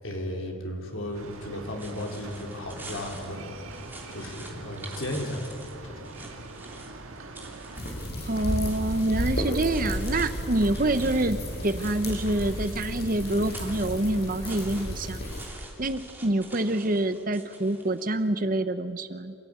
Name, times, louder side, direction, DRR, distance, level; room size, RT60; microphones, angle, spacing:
voice 1, 0.0-3.8 4.1-5.5 5.8-6.1, left 1 dB, 75° left, 0 dB, 3.7 m, -35 dB
sound 1, 1.1-18.3, right 2 dB, 10° right, 2.8 m, -47 dB
sound 2, 1.1-7.8, right 3 dB, 85° right, 1.6 m, -44 dB
sound 3, 7.7-15.4, equal, 50° left, 6.2 m, -33 dB
voice 2, 8.3-11.4 11.6-15.2 15.8-19.3, right 1 dB, 40° right, 11 dB, 0.8 m, -26 dB
27.5 x 15.5 x 9.5 m, 2.7 s
head